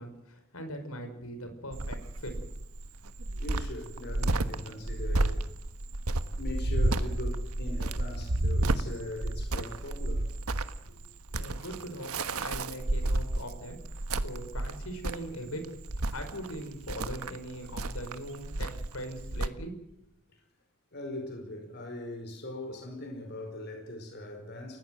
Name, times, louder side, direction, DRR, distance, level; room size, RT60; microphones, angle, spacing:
voice 1, 0.0-2.3 10.9-11.0 11.3-13.8 14.2-15.7 16.0-19.7, equal, 80° left, 5.5 m, -41 dB
Cricket, 1.7-19.5, right 2 dB, 85° right, 1.3 m, -31 dB
voice 2, 3.4-5.5 6.4-10.3 20.9-24.8, left 1 dB, 50° left, 5.2 m, -40 dB
30.0 x 17.0 x 7.8 m
head